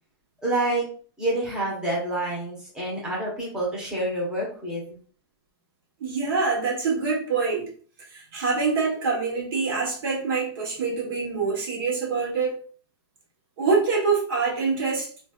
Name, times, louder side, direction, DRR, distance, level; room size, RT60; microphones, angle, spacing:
voice 1, 0.4-0.8 1.2-5.0, right 1 dB, 5° right, -6 dB, 1.1 m, -27 dB
voice 2, 6.0-7.7 8.1-12.5 13.6-15.1, right 4 dB, 60° right, -1 dB, 1.1 m, -25 dB
3.1 x 2.6 x 2.4 m, 0.43 s
hypercardioid pair, 150°, 14 cm